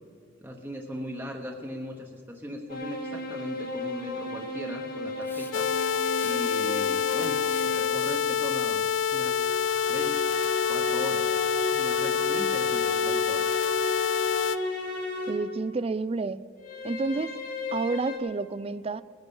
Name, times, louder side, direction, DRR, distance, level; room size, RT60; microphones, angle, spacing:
voice 1, 0.4-5.7 6.2-8.8 9.1-9.4 9.9-10.3 10.7-11.3 11.7-13.4, equal, 10° right, 1.0 m, -38 dB
sound 1, 2.7-8.1 9.1-15.6 16.6-18.2, left 2 dB, 50° left, 2.7 m, -34 dB
Hiss, 5.2-5.7 6.1-6.7 7.4-8.4, left 3 dB, 10° left, 0.9 m, -47 dB
sound 2, 5.5-14.6, left 7 dB, 75° left, 0.5 m, -27 dB
voice 2, 15.3-16.4 16.8-17.4 17.7-19.0, right 3 dB, 30° right, 0.4 m, -30 dB
20.5 x 9.9 x 5.4 m
head